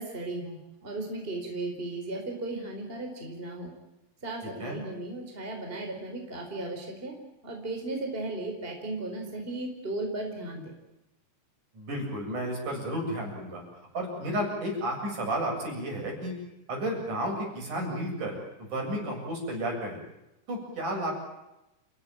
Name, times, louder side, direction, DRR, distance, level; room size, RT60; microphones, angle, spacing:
voice 1, 0.0-3.7 4.2-7.2 7.4-10.7, right 2 dB, 15° right, 2 dB, 4.7 m, -36 dB
voice 2, 4.4-4.8 11.7-13.6 13.9-16.3 16.7-20.0 20.5-21.1, right 1 dB, 65° right, 0 dB, 9.2 m, -32 dB
30.0 x 16.5 x 9.0 m, 0.92 s
omnidirectional pair, 3.9 m